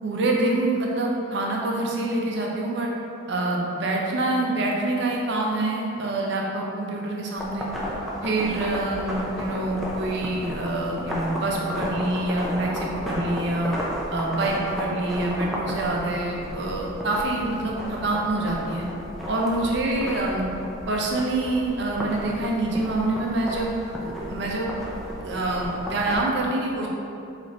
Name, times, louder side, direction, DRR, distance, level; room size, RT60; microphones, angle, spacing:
voice 1, 0.0-2.9 3.3-7.7 8.2-13.8 14.1-18.9 19.3-20.5 20.9-24.7 25.2-26.9, right 2 dB, 55° right, -1 dB, 0.5 m, -26 dB
sound 1, 7.4-26.2, equal, ahead, 0.3 m, -34 dB
4.0 x 2.5 x 3.1 m, 2.7 s
head